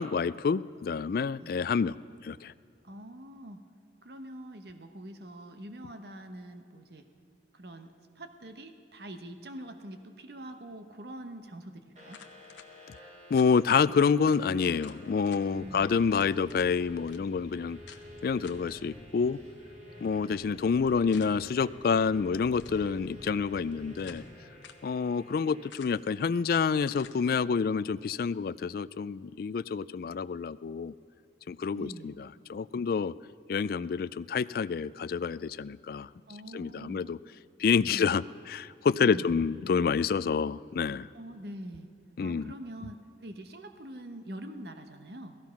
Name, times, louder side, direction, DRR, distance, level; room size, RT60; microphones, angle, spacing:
voice 1, 0.0-2.0 2.2-2.5 13.3-17.8 18.2-19.4 20.0-24.2 24.8-30.9 31.5-33.1 33.5-36.1 36.5-37.2 37.6-41.1 42.2-42.5, left 5 dB, 55° left, 17 dB, 0.3 m, -28 dB
voice 2, 2.8-3.6 4.0-7.1 7.5-12.2 15.6-15.9 31.7-32.1 36.3-37.0 37.9-38.1 39.0-39.3 41.1-41.9 42.2-45.3, right 1 dB, 60° right, 7 dB, 1.1 m, -44 dB
sound 1, 12.0-25.7, left 1 dB, 40° right, 3.3 m, -51 dB
sound 2, 12.1-12.7 13.3-13.5 13.9-14.0 14.2-14.4 14.8-15.4 16.1-16.7 17.1-17.2 17.9-18.0 18.4-18.7 21.1-21.6 22.5-22.9 23.6-24.3 24.6-24.9 25.7-26.1 26.8-27.2, left 8 dB, 85° left, 0.9 m, -51 dB
sound 3, 15.5-24.2, equal, 15° right, 2.4 m, -51 dB
17.0 x 14.5 x 5.8 m, 2.7 s
head